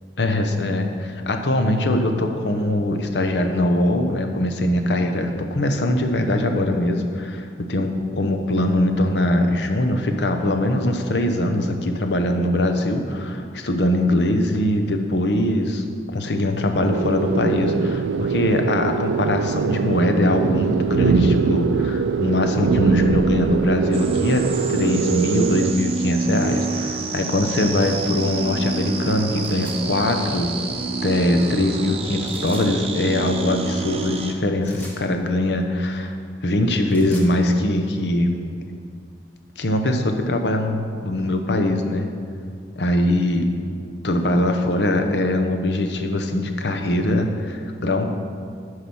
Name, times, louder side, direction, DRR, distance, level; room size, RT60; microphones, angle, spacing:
voice 1, 0.2-15.8 16.1-30.5 31.0-36.2 36.4-38.5 39.6-42.1 42.8-43.5 44.0-48.1, left 1 dB, 75° left, 5 dB, 0.8 m, -22 dB
sound 1, 16.8-25.7, right 5 dB, 80° right, 0.3 m, -22 dB
sound 2, 23.9-34.3, right 4 dB, 35° right, 0.7 m, -28 dB
sound 3, 29.4-29.8 32.2-32.7 34.6-35.0 36.7-37.3, equal, 10° left, 1.4 m, -42 dB
10.5 x 4.9 x 5.5 m, 2.2 s
head